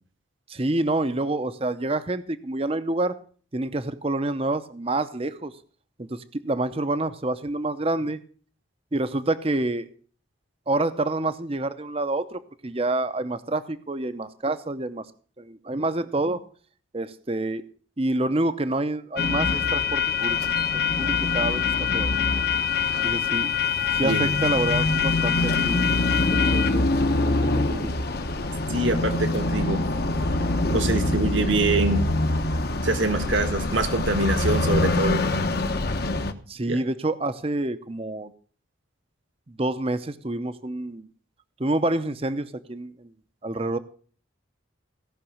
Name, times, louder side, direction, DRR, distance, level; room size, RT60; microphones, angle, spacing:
voice 1, 0.5-3.1 3.5-5.5 6.0-8.2 8.9-9.9 10.7-15.1 15.4-16.4 16.9-17.6 18.0-20.4 21.0-21.7 21.9-22.1 23.0-23.5 23.9-25.8 26.2-27.9 36.5-38.3 39.5-41.1 41.6-43.1 43.4-43.8, right 2 dB, 30° right, 12 dB, 0.7 m, -27 dB
sound 1, 19.2-36.3, left 3 dB, 50° left, 1.1 m, -24 dB
voice 2, 28.7-29.8 30.7-32.1 32.8-35.3 36.7-36.8, right 2 dB, 70° right, 6 dB, 1.5 m, -25 dB
17.5 x 5.9 x 7.2 m, 0.43 s
head